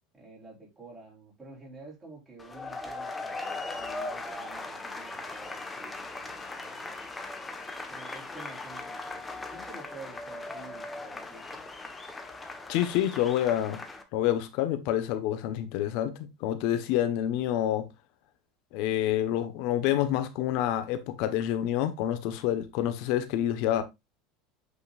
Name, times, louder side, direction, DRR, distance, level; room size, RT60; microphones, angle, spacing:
voice 1, 0.1-7.0 7.9-11.6, right 3 dB, 15° right, 4.2 m, -50 dB
sound 1, 2.4-14.0, left 2 dB, 10° left, 1.2 m, -39 dB
voice 2, 12.7-13.8 14.1-17.9 18.7-23.8, left 12 dB, 65° left, 1.2 m, -28 dB
8.5 x 5.4 x 2.5 m
supercardioid pair, 135°, 0 cm